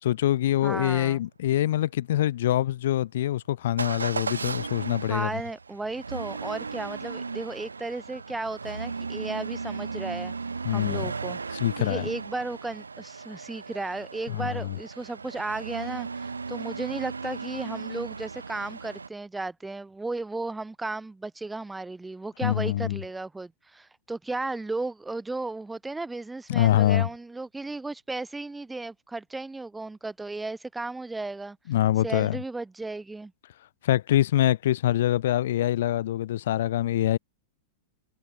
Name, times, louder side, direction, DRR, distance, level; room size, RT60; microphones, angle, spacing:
voice 1, 0.0-5.3 10.6-11.1 11.6-12.1 14.3-14.8 22.4-23.0 26.5-27.1 31.7-32.4 33.8-37.2, left 13 dB, 60° left, 3.0 m, -24 dB
voice 2, 0.6-1.2 5.1-10.3 10.7-31.6 32.0-33.3, right 3 dB, 10° right, 3.7 m, -34 dB
Motor vehicle (road) / Engine starting / Accelerating revving vroom, 3.8-19.1, right 4 dB, 80° right, 2.6 m, -36 dB
figure-of-eight pair, 95°, 0 cm